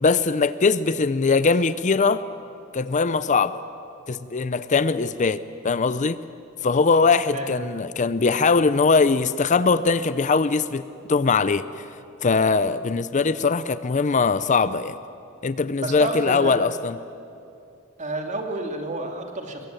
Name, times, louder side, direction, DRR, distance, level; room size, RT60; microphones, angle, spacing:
voice 1, 0.0-2.2 2.7-3.6 4.1-6.2 6.6-10.8 11.1-11.6 12.2-15.0 15.4-17.0, left 4 dB, 35° left, 14 dB, 0.5 m, -21 dB
voice 2, 15.8-16.6 18.0-19.7, right 2 dB, 35° right, 3 dB, 2.6 m, -30 dB
24.5 x 22.0 x 9.1 m, 2.7 s
head